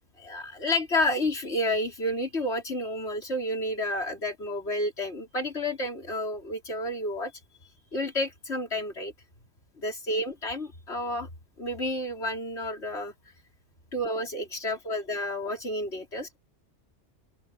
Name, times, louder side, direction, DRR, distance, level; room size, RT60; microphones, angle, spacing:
voice 1, 0.2-7.3 7.9-9.1 9.8-11.3 11.6-13.1 13.9-16.4, left 1 dB, 70° left, 4.5 m, -30 dB
open air
omnidirectional pair, 1.2 m